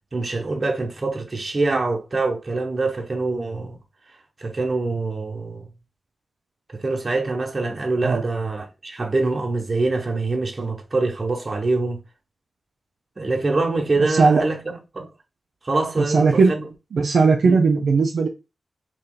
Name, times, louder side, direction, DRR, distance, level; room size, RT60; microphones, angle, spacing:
voice 1, 0.1-3.8 4.4-5.7 6.7-12.0 13.2-15.1 15.6-16.6 17.4-17.6, right 3 dB, 45° right, 1.1 m, -24 dB
voice 2, 14.1-14.4 16.0-16.5 16.9-18.3, right 4 dB, 80° right, 0.5 m, -17 dB
3.0 x 2.7 x 3.9 m
cardioid pair, 45°, 0 cm